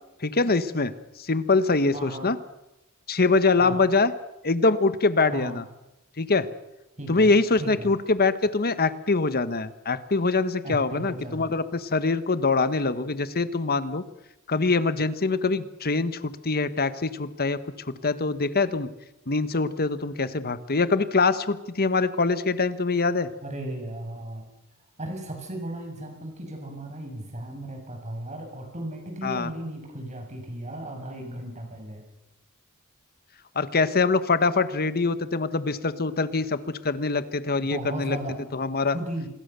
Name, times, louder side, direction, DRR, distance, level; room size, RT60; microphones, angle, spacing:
voice 1, 0.2-0.9 1.2-2.4 3.1-4.1 4.4-5.6 6.2-6.5 7.1-14.0 14.5-17.6 18.0-18.9 19.3-23.3 29.2-29.5 33.5-38.2 38.5-38.9, left 3 dB, 45° left, 13 dB, 1.3 m, -24 dB
voice 2, 1.9-2.3 3.6-3.9 5.3-5.6 7.0-7.9 10.6-11.5 23.4-24.5 25.0-32.1 37.7-38.4 38.9-39.3, right 1 dB, 30° right, 3 dB, 6.8 m, -36 dB
27.0 x 21.0 x 6.9 m, 0.94 s
head